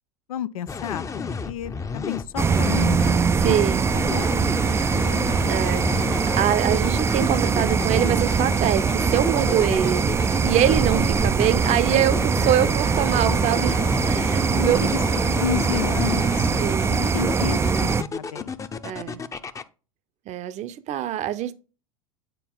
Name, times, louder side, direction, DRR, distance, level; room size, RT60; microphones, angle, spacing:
voice 1, 0.3-3.0 3.9-4.2 4.7-5.3 14.5-14.9 15.3-16.5 16.9-18.6, left 11 dB, 80° left, 0.5 m, -31 dB
sound 1, 0.7-19.6, left 5 dB, 20° left, 0.7 m, -32 dB
sound 2, 2.4-18.0, right 5 dB, 15° right, 0.3 m, -22 dB
voice 2, 3.4-3.9 5.5-14.8 15.1-15.2 16.6-16.9 18.8-19.2 20.3-21.5, right 11 dB, 40° right, 0.7 m, -24 dB
9.2 x 4.2 x 3.8 m
hypercardioid pair, 85°, 18 cm